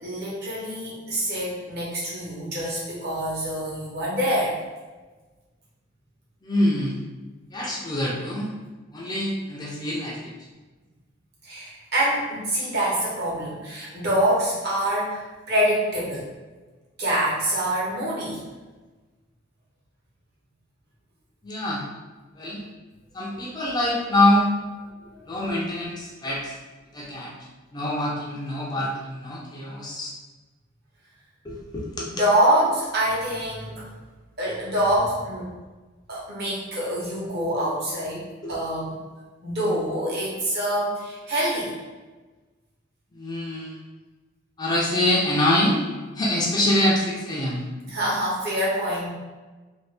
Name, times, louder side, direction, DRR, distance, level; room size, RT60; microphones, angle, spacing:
voice 1, 0.0-4.5 11.4-16.2 17.0-18.4 25.1-25.2 32.1-33.8 34.4-35.4 36.1-38.2 38.5-39.0 39.4-41.7 47.8-49.1, right 1 dB, 50° right, -6 dB, 1.1 m, -25 dB
voice 2, 6.4-7.0 7.5-8.5 8.9-10.3 21.4-21.9 22.3-22.6 23.1-24.5 25.3-26.6 26.9-27.3 27.7-30.1 31.4-32.1 38.4-38.6 43.1-43.8 44.6-45.8 46.1-47.7, left 1 dB, 20° left, -4 dB, 0.4 m, -25 dB
2.7 x 2.7 x 3.3 m, 1.3 s
head